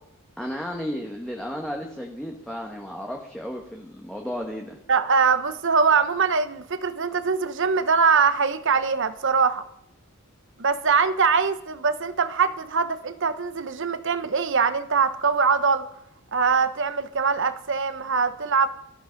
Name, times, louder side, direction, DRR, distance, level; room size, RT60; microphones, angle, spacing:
voice 1, 0.4-4.8, equal, 5° left, 0 dB, 1.4 m, -33 dB
voice 2, 4.9-9.6 10.6-15.8 16.3-18.7, right 5 dB, 55° right, 12 dB, 1.0 m, -22 dB
17.5 x 13.5 x 5.3 m, 0.80 s
head